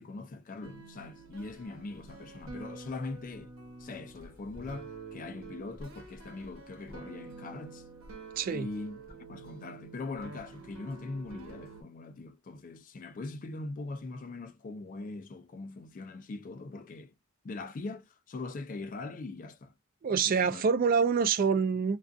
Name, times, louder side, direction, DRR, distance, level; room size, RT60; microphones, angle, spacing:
voice 1, 0.0-3.5 3.8-7.9 8.5-17.1 17.4-19.7 20.1-20.6, left 3 dB, 40° left, 0.4 m, -41 dB
sound 1, 0.6-11.8, right 3 dB, 70° right, 1.0 m, -48 dB
voice 2, 8.4-8.7 20.0-22.0, right 6 dB, 40° right, 0.3 m, -26 dB
2.3 x 2.3 x 2.4 m
head